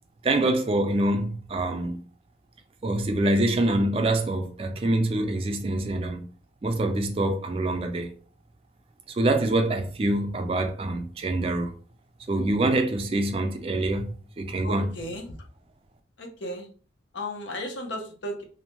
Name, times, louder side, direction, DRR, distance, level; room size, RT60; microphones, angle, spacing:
voice 1, 0.2-2.0 2.8-6.2 6.6-8.1 9.1-11.7 12.3-14.9, right 2 dB, 30° right, 0.4 m, -25 dB
voice 2, 14.6-15.3 16.2-16.7 17.1-18.4, left 1 dB, 80° left, 0.6 m, -35 dB
2.6 x 2.1 x 2.9 m
head